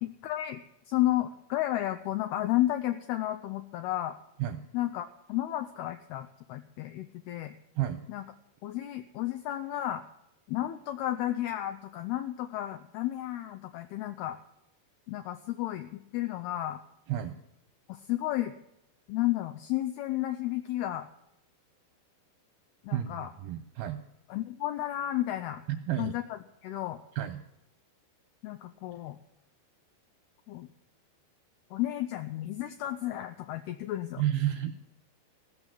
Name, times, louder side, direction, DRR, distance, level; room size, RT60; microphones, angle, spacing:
voice 1, 0.0-4.2 4.7-7.5 8.1-8.2 8.6-10.0 10.5-14.4 15.1-16.8 17.9-18.5 19.1-21.1 22.8-23.3 24.3-25.6 26.0-27.0 28.4-29.2 30.5-30.7 31.7-34.2, left 14 dB, 85° left, 7 dB, 2.2 m, -32 dB
voice 2, 22.9-24.0 25.7-26.1 27.2-27.4 34.2-34.8, right 12 dB, 85° right, 8 dB, 2.3 m, -31 dB
16.0 x 6.4 x 8.8 m, 0.82 s
omnidirectional pair, 5.1 m